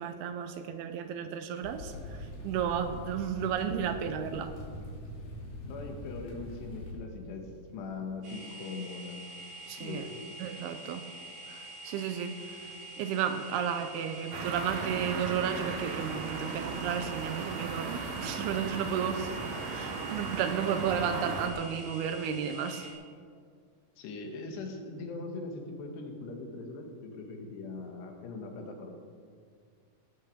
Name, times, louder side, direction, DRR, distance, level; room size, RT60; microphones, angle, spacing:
voice 1, 0.0-4.5 9.7-10.1 10.4-11.1 11.5-22.9, right 8 dB, 80° right, 8 dB, 2.5 m, -33 dB
sound 1, 1.6-6.9, left 1 dB, 55° left, 4.2 m, -43 dB
voice 2, 5.6-9.2 9.8-10.2 24.0-28.9, left 3 dB, 80° left, 3 dB, 3.6 m, -41 dB
sound 2, 8.2-22.9, right 1 dB, 45° right, 3.6 m, -46 dB
sound 3, 14.3-21.5, right 4 dB, 65° right, 1.8 m, -37 dB
17.5 x 8.2 x 6.7 m, 2.1 s
omnidirectional pair, 4.9 m